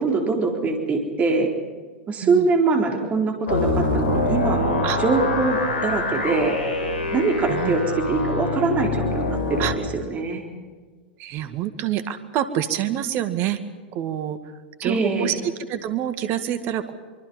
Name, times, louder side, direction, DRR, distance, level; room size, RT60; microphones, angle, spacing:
voice 1, 0.0-1.5 2.1-6.6 7.1-7.8 8.1-9.7 9.9-10.4 14.8-15.3, right 4 dB, 25° right, 3 dB, 4.0 m, -23 dB
sound 1, 3.5-9.7, left 2 dB, 75° left, 5.2 m, -24 dB
voice 2, 11.2-13.6 13.9-14.4 14.8-16.9, right 11 dB, 40° right, 11 dB, 2.0 m, -27 dB
24.5 x 24.0 x 5.5 m, 1.5 s
hypercardioid pair, 100°, 6 cm